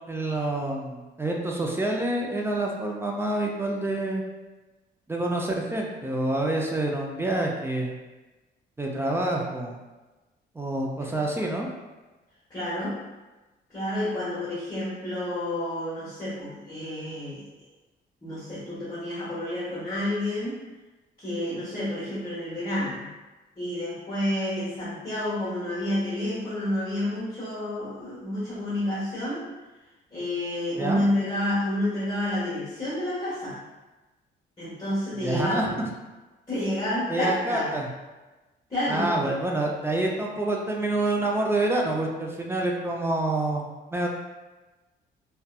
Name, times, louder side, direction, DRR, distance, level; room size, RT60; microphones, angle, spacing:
voice 1, 0.1-4.2 5.1-7.9 8.8-9.8 10.6-11.7 30.8-31.0 35.2-35.9 37.1-37.9 38.9-43.6 43.9-44.1, right 2 dB, 10° right, -1 dB, 0.4 m, -27 dB
voice 2, 12.5-13.0 13.7-17.4 18.2-20.6 21.2-23.1 23.6-29.5 30.1-33.6 34.6-35.7 36.5-37.7 38.7-39.1, left 1 dB, 25° left, -11 dB, 1.0 m, -29 dB
2.6 x 2.2 x 2.3 m, 1.1 s
cardioid pair, 90°, 20 cm